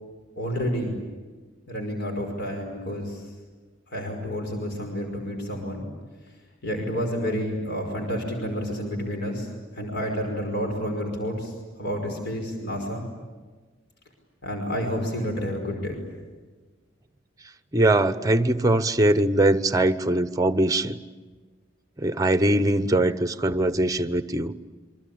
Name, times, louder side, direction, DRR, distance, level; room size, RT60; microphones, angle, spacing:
voice 1, 0.4-0.9 1.7-3.3 3.9-5.9 6.6-11.5 11.8-13.1 14.4-16.0, equal, 55° left, 3 dB, 5.3 m, -30 dB
voice 2, 17.7-21.0 22.0-24.5, right 1 dB, 20° right, 11 dB, 0.9 m, -21 dB
27.5 x 24.5 x 8.7 m, 1.3 s
head